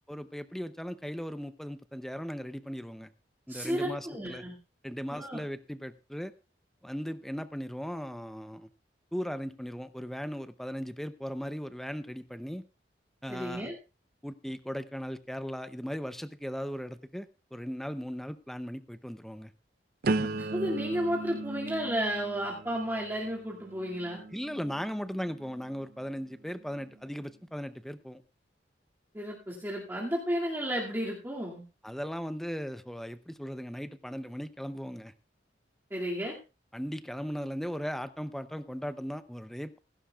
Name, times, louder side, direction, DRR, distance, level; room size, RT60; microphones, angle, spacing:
voice 1, 0.1-3.1 3.5-4.4 4.8-6.3 6.8-8.7 9.1-12.6 13.2-13.7 14.2-19.5 24.3-28.2 31.8-35.1 36.7-39.8, equal, ahead, 11 dB, 0.6 m, -37 dB
voice 2, 3.5-4.5 5.1-5.4 13.3-13.7 20.4-24.2 29.1-31.6 35.9-36.4, equal, 15° right, -5 dB, 2.2 m, -33 dB
sound 1, 20.0-25.9 26.4-26.9, right 2 dB, 55° right, 0.6 m, -37 dB
16.5 x 16.0 x 2.3 m, 0.30 s
head